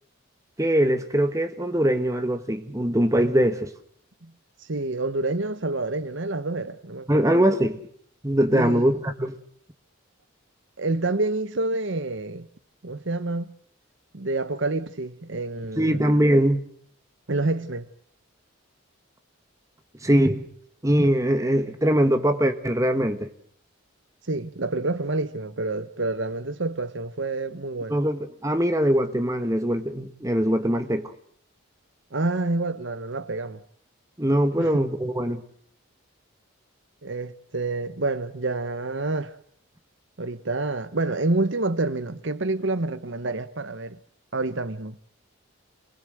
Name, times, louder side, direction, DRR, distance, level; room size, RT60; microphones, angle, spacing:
voice 1, 0.6-3.7 7.1-7.8 8.2-9.3 15.8-16.7 20.0-20.4 20.8-23.3 27.9-31.1 34.2-35.4, equal, 15° right, 1.5 m, -22 dB
voice 2, 4.7-7.3 8.5-8.9 10.8-12.5 12.8-13.5 14.1-16.0 17.3-17.9 24.3-28.0 32.1-33.6 34.6-34.8 37.0-39.3 40.2-44.0 44.3-45.0, right 2 dB, 60° right, 1.0 m, -28 dB
27.0 x 20.5 x 7.8 m
head